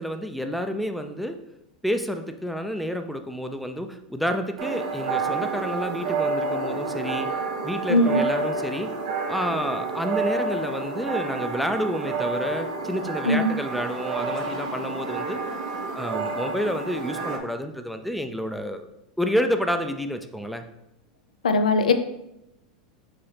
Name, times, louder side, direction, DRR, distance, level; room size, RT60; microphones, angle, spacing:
voice 1, 0.0-1.4 1.8-7.3 7.6-8.9 9.3-15.4 15.9-18.9 19.2-20.6, equal, ahead, 6 dB, 0.4 m, -29 dB
sound 1, 4.6-17.4, right 4 dB, 65° right, 0.7 m, -29 dB
voice 2, 7.9-8.2 13.3-13.5 21.4-21.9, left 2 dB, 85° left, 8 dB, 0.4 m, -19 dB
4.8 x 3.0 x 3.3 m, 0.86 s
hypercardioid pair, 95°, 4 cm